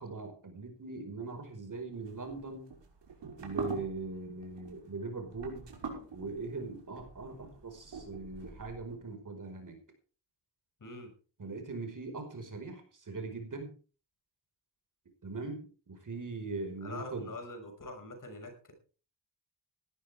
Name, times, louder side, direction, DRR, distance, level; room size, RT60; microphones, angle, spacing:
voice 1, 0.0-2.7 3.4-5.7 6.1-9.8 11.4-13.7 15.2-17.3, right 3 dB, 45° right, 5 dB, 5.1 m, -40 dB
sound 1, 1.9-9.0, right 5 dB, 85° right, 5.6 m, -44 dB
voice 2, 10.8-11.1 16.8-18.7, left 2 dB, 45° left, 4 dB, 6.1 m, -44 dB
18.0 x 13.5 x 3.6 m, 0.38 s
wide cardioid pair, 130°, 42 cm